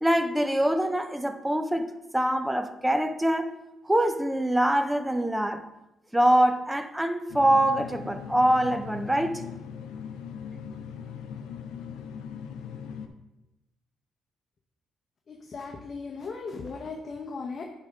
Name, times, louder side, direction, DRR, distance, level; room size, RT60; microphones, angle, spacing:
voice 1, 0.0-3.6 3.9-5.6 6.1-9.4, right 1 dB, 5° right, 9 dB, 0.7 m, -24 dB
sound 1, 7.3-13.1, left 7 dB, 90° left, 0.6 m, -40 dB
voice 2, 15.3-17.6, left 4 dB, 45° left, 1 dB, 0.9 m, -37 dB
8.9 x 3.6 x 5.4 m, 0.96 s
cardioid pair, 90°, 0 cm